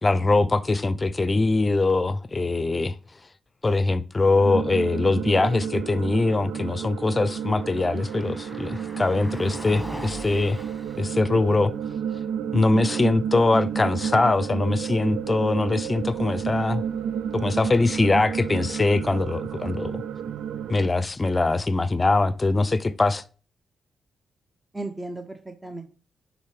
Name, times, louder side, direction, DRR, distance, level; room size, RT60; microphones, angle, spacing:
voice 1, 0.0-3.0 3.6-10.6 11.0-11.7 12.5-16.8 17.3-20.0 20.7-23.2, left 3 dB, 30° left, 0.6 m, -22 dB
sound 1, 4.3-20.9, right 8 dB, 75° right, 0.3 m, -31 dB
Car passing by, 6.9-23.0, equal, ahead, 1.4 m, -46 dB
voice 2, 12.7-13.0 24.7-25.9, right 2 dB, 20° right, 0.8 m, -36 dB
11.5 x 3.9 x 3.3 m
supercardioid pair, 50°, 0 cm